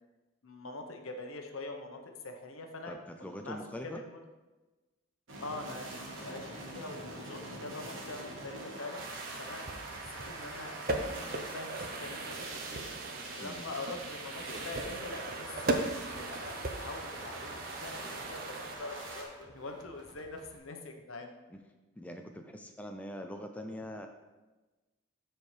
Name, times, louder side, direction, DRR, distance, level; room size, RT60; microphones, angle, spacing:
voice 1, 0.4-3.6 3.8-4.2 5.4-9.0 9.4-10.0 10.3-12.8 13.4-21.3, left 2 dB, 80° left, 4 dB, 0.9 m, -44 dB
voice 2, 2.9-4.0 13.4-13.7 21.5-21.6 22.0-24.1, equal, 5° left, 4 dB, 0.4 m, -43 dB
sound 1, 5.3-19.2, right 2 dB, 65° right, 1.3 m, -44 dB
sound 2, 9.0-18.8, right 2 dB, 45° right, 0.6 m, -39 dB
sound 3, 14.4-20.6, right 1 dB, 20° right, 0.9 m, -58 dB
12.5 x 4.5 x 3.3 m, 1.2 s
head